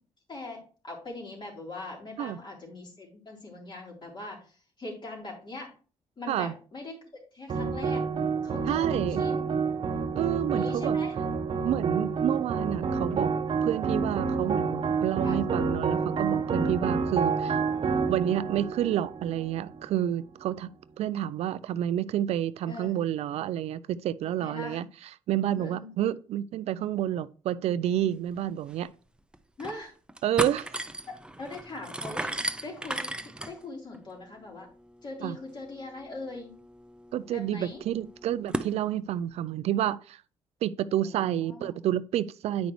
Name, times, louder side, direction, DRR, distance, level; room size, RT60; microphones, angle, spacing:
voice 1, 0.3-5.7 6.2-7.0 7.3-8.0 8.4-9.5 10.5-11.1 15.2-15.4 22.7-22.9 24.3-24.8 25.5-25.9 29.6-29.9 31.0-31.1 31.4-32.3 32.6-34.7 35.0-36.5 37.3-37.8 40.8-41.7, left 2 dB, 40° left, 3.7 m, -41 dB
sound 1, 7.5-20.0, right 5 dB, 50° right, 0.9 m, -28 dB
voice 2, 8.7-9.2 10.1-11.0 11.6-13.3 13.6-17.6 18.1-20.7 21.0-24.9 25.3-28.9 30.2-30.8 35.2-35.4 37.1-40.2 40.6-42.7, right 11 dB, 70° right, 0.4 m, -29 dB
sound 2, 28.4-28.5 28.7-28.8 29.3-29.8 30.1-38.7, right 1 dB, 10° right, 0.6 m, -37 dB
9.2 x 5.1 x 3.1 m
supercardioid pair, 70°, 11 cm